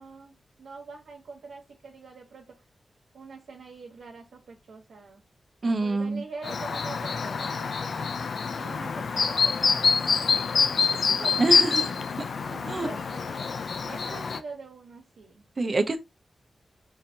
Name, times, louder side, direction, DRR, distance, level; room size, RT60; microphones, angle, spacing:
voice 1, 0.0-2.6 3.1-5.2 5.6-8.1 8.6-11.4 12.4-13.6 13.9-15.4, right 4 dB, 90° right, 1.1 m, -44 dB
voice 2, 5.6-6.2 11.4-11.9 12.7-12.9 15.6-16.0, right 2 dB, 45° right, 0.7 m, -26 dB
Chirp tweet, 6.4-14.4, left 5 dB, 70° left, 0.3 m, -26 dB
4.0 x 2.7 x 2.7 m
wide cardioid pair, 85°, 0 cm